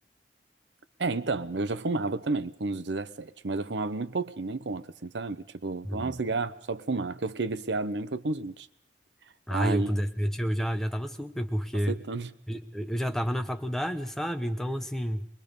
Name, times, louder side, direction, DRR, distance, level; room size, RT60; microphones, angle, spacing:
voice 1, 1.0-8.7 9.5-9.9 11.9-12.3, right 3 dB, 80° right, 0.8 m, -31 dB
voice 2, 5.8-6.2 9.5-12.0 12.5-15.3, equal, ahead, 1.0 m, -30 dB
23.0 x 22.0 x 5.3 m
head